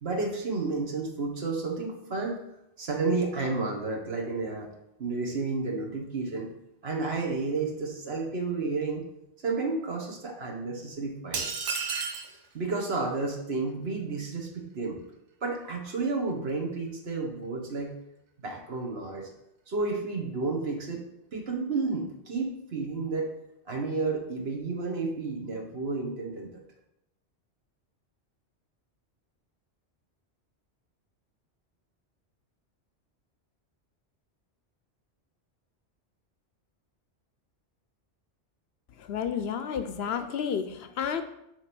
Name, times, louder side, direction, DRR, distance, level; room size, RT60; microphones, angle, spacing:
voice 1, 0.0-2.4 2.8-4.7 5.0-6.5 6.8-9.0 9.4-11.6 12.3-15.0 15.4-17.9 18.4-19.3 19.7-21.0 21.3-23.3 23.7-26.6, right 3 dB, 60° right, 1 dB, 1.5 m, -31 dB
sound 1, 11.3-12.3, right 5 dB, 85° right, 1.1 m, -31 dB
voice 2, 39.0-41.2, left 7 dB, 70° left, 9 dB, 0.8 m, -31 dB
7.2 x 3.3 x 6.0 m, 0.83 s
omnidirectional pair, 1.2 m